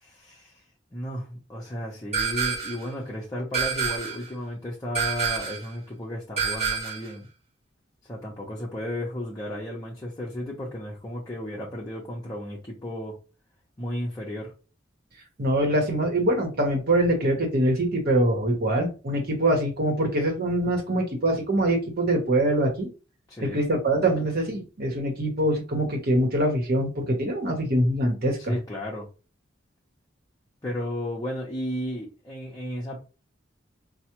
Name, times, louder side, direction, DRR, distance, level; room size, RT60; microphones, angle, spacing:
voice 1, 0.0-0.5 0.9-7.3 8.0-13.1 13.8-14.5 23.3-23.6 28.4-29.1 30.6-33.0, equal, 20° left, -5 dB, 0.7 m, -34 dB
sound 1, 2.1-2.9 3.5-4.3 4.9-5.7 6.4-7.1, right 6 dB, 35° right, 1.2 m, -27 dB
voice 2, 15.4-22.9 23.4-28.5, right 1 dB, 55° right, 2 dB, 0.9 m, -24 dB
4.5 x 2.0 x 2.9 m, 0.33 s
head